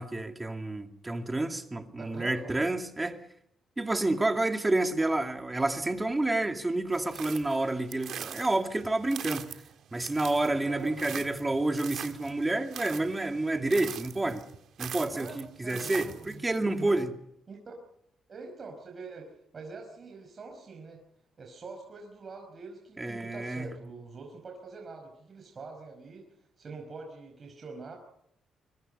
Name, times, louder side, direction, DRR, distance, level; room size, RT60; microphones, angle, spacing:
voice 1, 0.0-3.2 3.8-9.5 9.9-14.4 14.8-17.1 23.0-23.7, right 2 dB, 15° right, 2.4 m, -29 dB
voice 2, 2.0-2.7 10.6-11.2 15.1-15.4 15.6-16.4 16.7-17.0 17.5-17.8 18.3-21.0 21.4-26.3 26.6-28.0, right 4 dB, 40° right, 5.1 m, -44 dB
sound 1, 6.9-16.6, right 9 dB, 70° right, 1.7 m, -42 dB
25.0 x 23.5 x 5.5 m
cardioid pair, 110°, 0 cm